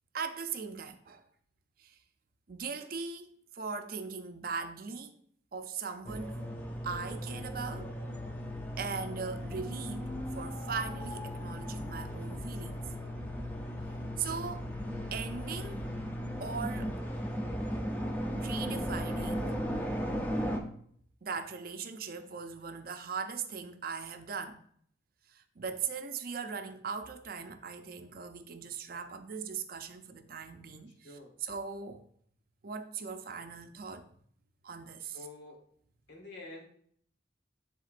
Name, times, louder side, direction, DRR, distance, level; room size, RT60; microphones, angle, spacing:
voice 1, 0.1-1.2 1.8-2.0 2.5-5.2 5.5-6.4 6.8-7.9 8.8-12.8 14.2-14.7 15.1-15.9 16.4-16.9 18.4-19.6 21.2-24.6 25.3-32.0 32.6-34.1 34.6-35.2, right 5 dB, 50° right, 0.5 m, -39 dB
sound 1, 6.0-20.6, equal, 10° left, 0.6 m, -36 dB
voice 2, 31.0-31.3 35.1-35.6 36.1-36.7, left 2 dB, 75° left, 1.7 m, -47 dB
10.5 x 3.6 x 2.5 m
head